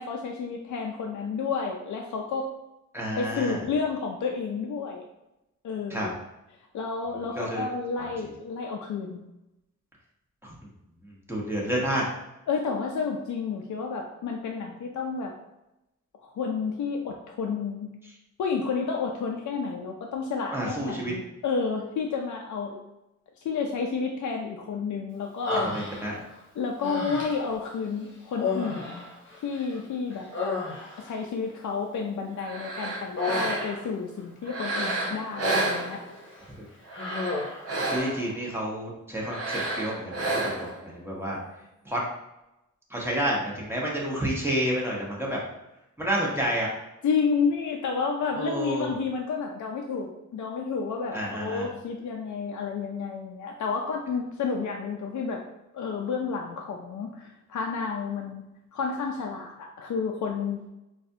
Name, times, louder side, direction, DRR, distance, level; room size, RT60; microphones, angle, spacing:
voice 1, 0.0-2.5 3.2-5.0 5.6-6.2 6.7-9.2 12.5-15.3 16.2-17.9 18.4-22.8 23.4-25.7 26.6-29.1 29.4-30.3 31.0-36.0 47.0-55.4 55.7-58.4 58.7-60.6, left 5 dB, 70° left, 1 dB, 0.5 m, -30 dB
voice 2, 2.9-3.6 5.9-6.1 7.3-7.6 8.0-8.1 11.3-12.1 20.5-21.1 25.7-26.2 37.9-40.7 40.9-41.4 41.9-42.0 42.9-45.4 46.0-46.7 48.3-48.9 51.1-51.7, right 1 dB, 10° right, -4 dB, 1.0 m, -29 dB
Human voice, 25.5-26.4 26.8-27.6 28.3-29.8 30.1-31.2 33.2-33.9 34.9-35.9 36.2-36.5 36.9-37.7, left 3 dB, 40° left, 0.8 m, -32 dB
sound 1, 32.4-33.9 34.4-36.3 36.9-38.4 39.2-40.8, right 2 dB, 50° right, 0.8 m, -30 dB
4.1 x 2.3 x 2.7 m, 0.92 s
cardioid pair, 90°, 31 cm